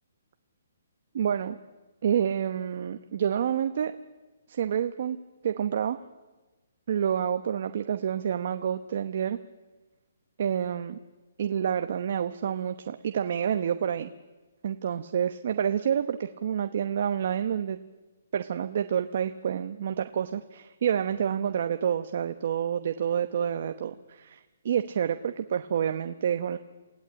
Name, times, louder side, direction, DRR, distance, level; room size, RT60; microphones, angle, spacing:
voice 1, 1.1-1.6 2.0-4.0 4.5-5.2 5.4-6.0 6.9-9.4 10.4-11.0 11.4-14.1 14.6-17.8 18.3-26.6, right 8 dB, 50° right, 9 dB, 1.0 m, -28 dB
28.5 x 17.0 x 8.9 m, 1.2 s
hypercardioid pair, 165°, 0 cm